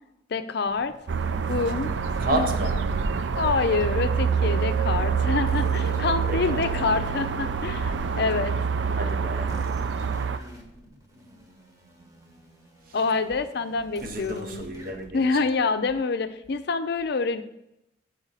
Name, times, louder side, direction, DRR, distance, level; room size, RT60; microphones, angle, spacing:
voice 1, 0.3-0.9 1.5-1.9 2.3-2.8 3.4-8.5 12.9-14.7 15.1-17.4, left 4 dB, 60° left, 0.5 m, -26 dB
sound 1, 0.6-4.4 5.5-8.5 9.5-15.1, equal, 20° right, 1.1 m, -47 dB
sound 2, 1.1-10.4, right 6 dB, 70° right, 0.4 m, -26 dB
voice 2, 2.2-2.8 6.3-6.6 9.0-9.5 14.0-15.2, right 1 dB, 50° right, 0.8 m, -31 dB
8.6 x 4.5 x 4.0 m
head